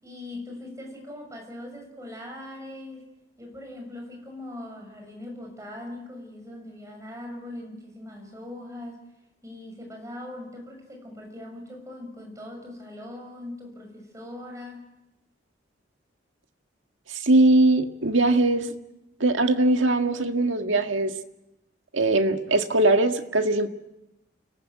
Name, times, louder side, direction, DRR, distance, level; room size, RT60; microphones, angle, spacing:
voice 1, 0.0-3.0 3.4-9.0 9.4-14.9, left 1 dB, 15° right, 2 dB, 6.5 m, -40 dB
voice 2, 17.1-18.7 19.2-21.1 21.9-23.7, right 2 dB, 85° right, 6 dB, 1.8 m, -21 dB
29.0 x 19.0 x 9.2 m, 0.92 s
head